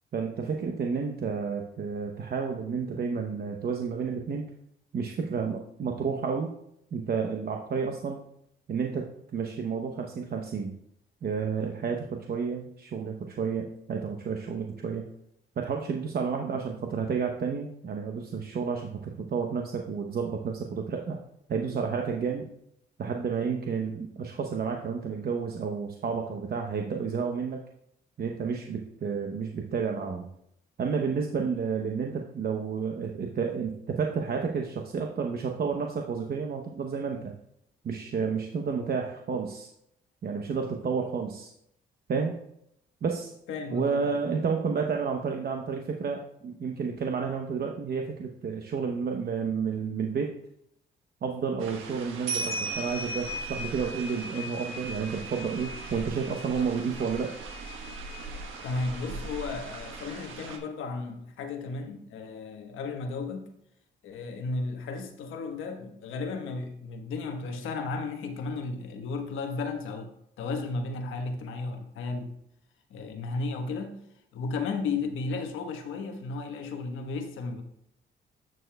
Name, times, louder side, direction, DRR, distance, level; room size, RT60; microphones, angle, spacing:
voice 1, 0.1-4.5 4.9-6.5 6.9-8.2 8.7-10.7 11.2-15.0 15.6-21.2 21.5-22.4 23.0-27.6 28.2-30.3 30.8-37.3 37.8-39.7 40.2-41.5 42.1-42.4 43.0-43.3 43.7-50.3 51.2-57.3, right 5 dB, 50° right, 2 dB, 0.8 m, -31 dB
voice 2, 43.5-44.2 58.6-63.5 64.0-70.1 70.4-72.3 72.9-74.0 74.3-77.6, left 3 dB, 85° left, 4 dB, 1.2 m, -34 dB
sound 1, 51.6-60.6, right 2 dB, 85° right, 1.3 m, -37 dB
10.5 x 6.7 x 2.3 m, 0.75 s
cardioid pair, 90°, 20 cm